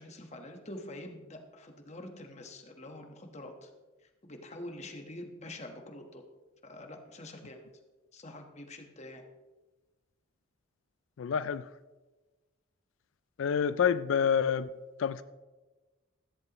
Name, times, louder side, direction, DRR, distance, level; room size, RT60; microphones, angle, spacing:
voice 1, 0.0-3.7 4.0-6.2 6.6-7.6 8.1-9.2, left 1 dB, 30° left, 1.2 m, -46 dB
voice 2, 11.2-11.7 13.4-14.7 15.0-15.2, left 7 dB, 70° left, 0.3 m, -27 dB
14.0 x 13.0 x 3.0 m
head